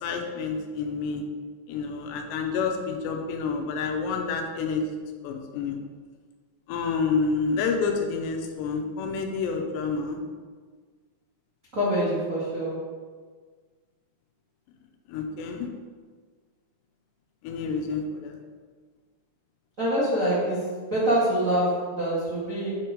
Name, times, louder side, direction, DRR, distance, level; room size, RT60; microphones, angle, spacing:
voice 1, 0.0-1.2 1.7-4.8 5.2-5.8 6.7-10.2 15.1-15.7 17.4-18.4, left 5 dB, 85° left, 4 dB, 3.0 m, -28 dB
voice 2, 11.7-12.8 19.8-22.8, right 1 dB, 90° right, -10 dB, 0.7 m, -25 dB
7.8 x 4.6 x 5.1 m, 1.5 s
omnidirectional pair, 4.8 m